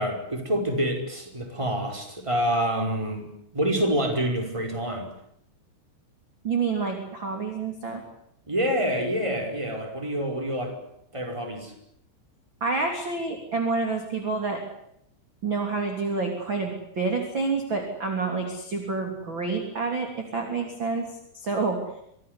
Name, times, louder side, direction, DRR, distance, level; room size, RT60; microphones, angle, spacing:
voice 1, 0.0-5.1 8.5-10.7 11.1-11.7, equal, 5° right, 3 dB, 4.6 m, -27 dB
voice 2, 6.4-8.0 12.6-14.6 15.4-21.1 21.3-21.8, right 4 dB, 30° right, 3 dB, 3.3 m, -28 dB
26.0 x 17.5 x 9.6 m, 0.76 s
omnidirectional pair, 5.6 m